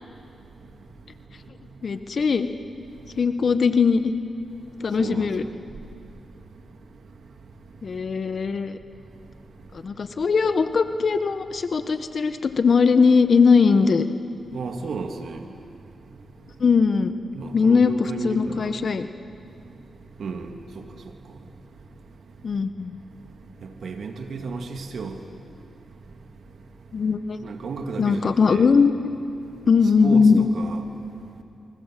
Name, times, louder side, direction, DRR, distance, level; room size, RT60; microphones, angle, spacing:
voice 1, 1.8-2.5 3.2-4.1 4.8-5.4 7.8-8.8 9.8-14.0 16.6-17.1 17.5-19.1 22.4-23.0 26.9-27.4 28.0-28.9 29.7-30.5, left 5 dB, 60° left, 1.4 m, -20 dB
voice 2, 14.5-15.4 17.3-18.7 20.2-20.5 20.8-20.9 23.8-25.2 27.4-28.7 30.0-30.8, right 4 dB, 70° right, 2.3 m, -33 dB
30.0 x 24.5 x 7.7 m
cardioid pair, 55°, 0 cm